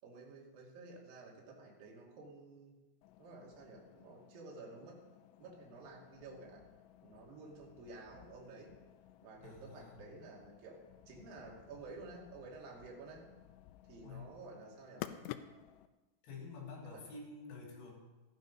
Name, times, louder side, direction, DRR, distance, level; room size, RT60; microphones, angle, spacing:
voice 1, 0.0-2.8 3.2-5.0 5.4-6.7 7.0-8.8 9.2-13.3 13.9-15.1 16.8-17.0, right 3 dB, 55° right, -2 dB, 3.8 m, -52 dB
sound 1, 3.0-15.9, left 13 dB, 85° left, 2.8 m, -54 dB
voice 2, 9.4-10.0 14.0-14.4 16.2-17.9, left 4 dB, 60° left, -2 dB, 5.5 m, -49 dB
15.5 x 10.5 x 5.4 m, 1.1 s
omnidirectional pair, 5.7 m